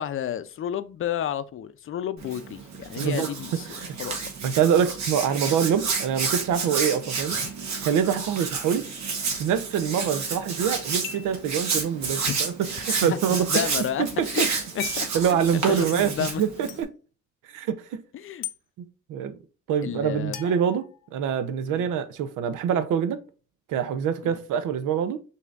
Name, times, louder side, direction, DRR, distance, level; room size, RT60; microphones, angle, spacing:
voice 1, 0.0-4.2 7.3-7.5 12.2-12.4 12.6-13.2 13.5-14.4 14.7-16.4 18.1-18.4 19.8-20.4 21.7-21.8 24.2-24.4, left 9 dB, 45° left, 0.5 m, -32 dB
Hands, 2.2-16.8, right 5 dB, 65° right, 1.4 m, -30 dB
voice 2, 3.0-3.3 3.8-3.9 4.4-7.4 7.8-8.9 9.4-13.7 14.0-14.5 15.1-16.1 16.4-16.9 17.5-18.0 19.1-19.3 19.7-23.2 23.7-25.2, right 8 dB, 85° right, 0.7 m, -25 dB
sound 1, 11.0-11.4 12.9-13.0 14.8-15.1 16.7-16.8 18.4-18.6 20.3-21.4, left 13 dB, 90° left, 0.6 m, -37 dB
6.7 x 2.8 x 2.5 m
cardioid pair, 90°, 30 cm